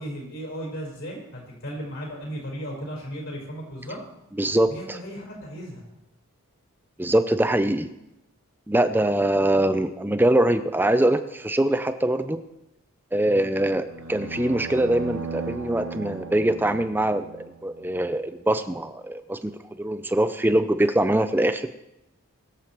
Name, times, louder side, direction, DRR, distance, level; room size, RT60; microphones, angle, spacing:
voice 1, 0.0-4.0 4.7-5.8 13.3-13.4, equal, 65° left, -2 dB, 4.8 m, -35 dB
voice 2, 4.4-5.0 7.0-7.9 8.7-12.4 13.1-17.2 17.6-19.5 19.8-21.7, right 1 dB, 10° right, 10 dB, 0.5 m, -23 dB
sound 1, 13.9-18.1, right 4 dB, 75° right, 1.5 m, -37 dB
22.0 x 7.6 x 4.4 m, 0.89 s
head